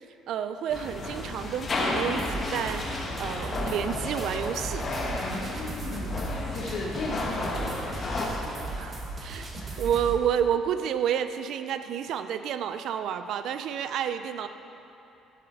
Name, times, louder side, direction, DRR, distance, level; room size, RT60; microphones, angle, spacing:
voice 1, 0.3-4.9 8.8-8.9 9.2-9.5 9.8-14.5, right 9 dB, 65° right, 10 dB, 0.4 m, -30 dB
sound 1, 0.7-8.3, left 2 dB, 35° left, 1.3 m, -32 dB
sound 2, 2.2-10.2, right 2 dB, 30° right, 1.1 m, -37 dB
voice 2, 5.2-8.8 9.6-9.8, left 2 dB, 60° left, -5 dB, 1.4 m, -37 dB
11.5 x 6.7 x 3.9 m, 2.9 s
cardioid pair, 110°, 0 cm